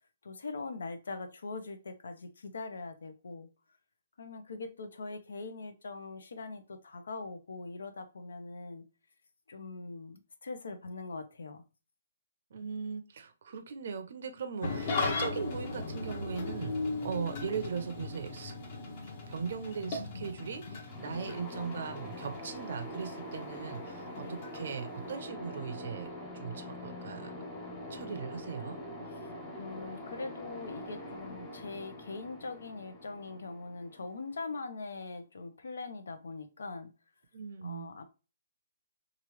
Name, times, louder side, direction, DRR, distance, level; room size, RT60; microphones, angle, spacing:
voice 1, 0.2-3.5 4.2-8.8 9.5-11.6 21.1-21.3 24.1-24.5 29.1-36.9 37.6-38.0, left 3 dB, 85° left, 0.6 m, -42 dB
voice 2, 12.5-18.5 19.3-26.1 26.3-27.3 27.9-28.8 37.3-37.9, right 6 dB, 55° right, 0.5 m, -39 dB
Engine starting / Idling, 14.6-25.2, left 3 dB, 40° left, 0.9 m, -38 dB
sound 1, 20.9-34.5, left 1 dB, 10° left, 0.5 m, -44 dB
3.0 x 2.4 x 3.0 m
hypercardioid pair, 165°, 0 cm